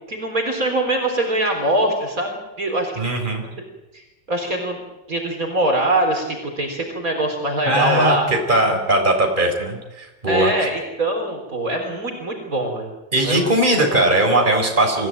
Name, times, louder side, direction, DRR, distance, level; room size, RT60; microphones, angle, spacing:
voice 1, 0.1-3.1 3.4-3.5 3.9-4.0 4.3-4.8 5.1-8.3 10.3-12.9 13.2-13.5, right 1 dB, 50° right, 2 dB, 4.2 m, -23 dB
voice 2, 3.0-3.4 7.7-10.5 13.1-15.1, right 1 dB, 25° right, 3 dB, 4.3 m, -19 dB
25.5 x 16.0 x 9.0 m, 1.0 s
omnidirectional pair, 2.0 m